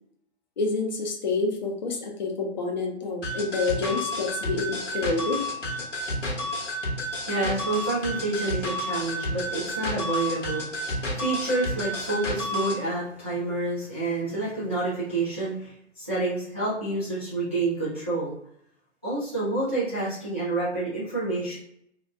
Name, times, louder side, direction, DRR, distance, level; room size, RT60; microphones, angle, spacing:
voice 1, 0.6-5.4, left 3 dB, 40° left, 1 dB, 0.6 m, -28 dB
sound 1, 3.2-12.8, left 1 dB, 85° left, 1.1 m, -30 dB
voice 2, 7.3-18.3 19.0-21.6, right 2 dB, 10° right, -12 dB, 0.3 m, -28 dB
2.8 x 2.3 x 3.2 m, 0.73 s
figure-of-eight pair, 130°, 36 cm